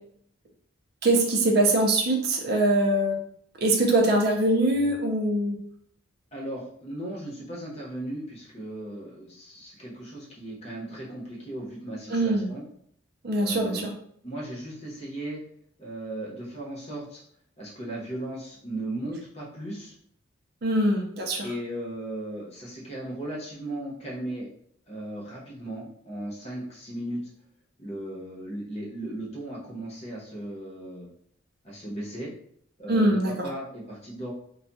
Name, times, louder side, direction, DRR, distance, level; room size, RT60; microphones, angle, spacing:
voice 1, 1.0-3.2 3.6-5.6 12.1-12.5 13.2-13.9 20.6-21.5 32.9-33.5, right 1 dB, 50° right, 1 dB, 0.5 m, -23 dB
voice 2, 6.3-12.6 13.4-13.9 14.2-15.4 15.8-17.2 17.6-19.9 21.4-24.5 24.9-27.2 27.8-31.1 31.6-32.3 32.8-34.3, right 1 dB, 30° left, -4 dB, 0.9 m, -36 dB
2.3 x 2.3 x 4.0 m, 0.65 s
head